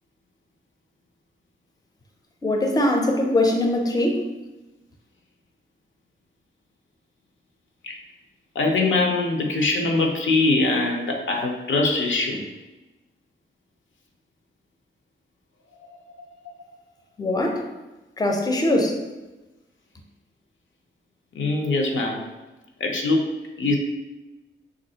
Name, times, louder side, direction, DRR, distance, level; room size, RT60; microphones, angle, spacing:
voice 1, 2.4-4.3 17.2-17.7 18.2-19.0, left 1 dB, 20° left, 2 dB, 0.5 m, -22 dB
voice 2, 8.6-12.4 15.9-16.0 21.3-22.2 22.8-23.8, left 2 dB, 75° left, 2 dB, 0.5 m, -23 dB
3.4 x 2.5 x 2.7 m, 1.1 s
cardioid pair, 65°, 20 cm